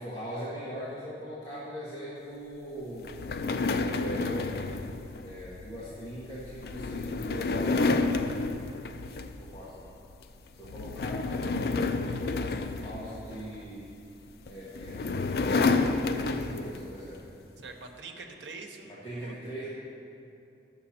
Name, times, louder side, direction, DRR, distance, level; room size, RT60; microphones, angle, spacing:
voice 1, 0.0-3.1 3.8-4.7 5.2-8.4 9.4-9.9 10.5-11.2 11.5-13.9 14.4-15.1 15.4-17.2 18.8-19.7, equal, 25° left, -10 dB, 1.4 m, -40 dB
sound 1, 3.0-9.6 9.9-10.2 10.6-13.6 14.5-16.9, left 3 dB, 60° left, 0.4 m, -30 dB
voice 2, 17.6-19.3, right 3 dB, 85° right, 3 dB, 0.9 m, -45 dB
11.5 x 6.8 x 4.3 m, 2.7 s
head